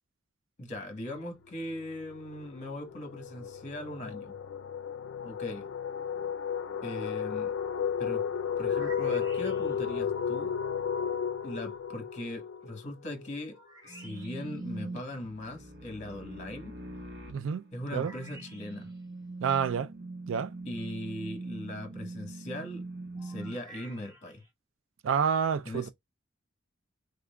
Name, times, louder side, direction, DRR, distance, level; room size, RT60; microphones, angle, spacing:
voice 1, 0.6-4.3 5.2-5.7 6.8-7.5 8.0-8.2 8.6-10.6 11.4-16.7 17.7-18.9 20.6-22.8 23.2-24.4 25.6-25.9, left 1 dB, 35° left, 1.0 m, -40 dB
sound 1, 1.2-1.5 1.8-13.4, left 7 dB, 80° left, 0.4 m, -33 dB
sound 2, 8.3-10.0 13.5-14.7 17.8-19.0 23.2-24.5, right 2 dB, 20° right, 1.7 m, -52 dB
sound 3, 13.9-23.5, right 2 dB, 60° right, 1.1 m, -42 dB
voice 2, 17.3-17.6 17.9-18.1 19.4-19.9 20.3-20.5 25.0-25.9, right 7 dB, 85° right, 0.4 m, -28 dB
3.7 x 3.3 x 2.2 m
head